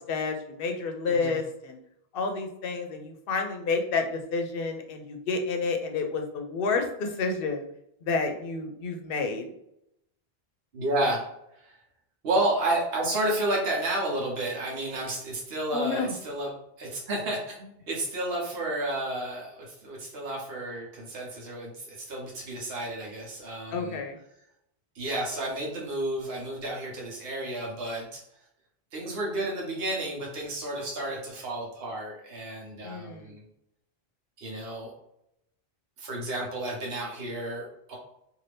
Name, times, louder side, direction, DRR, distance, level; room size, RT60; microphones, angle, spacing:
voice 1, 0.1-1.8 2.1-7.6 8.0-9.5 15.7-16.1 23.7-24.2 32.8-33.3, left 4 dB, 65° left, 4 dB, 0.7 m, -30 dB
voice 2, 10.7-11.2 11.5-11.8 12.2-16.5 16.8-24.0 24.9-28.2 28.9-33.4 34.4-34.9 36.0-38.0, right 1 dB, 70° right, -3 dB, 1.1 m, -31 dB
2.6 x 2.5 x 3.3 m, 0.78 s
omnidirectional pair, 1.1 m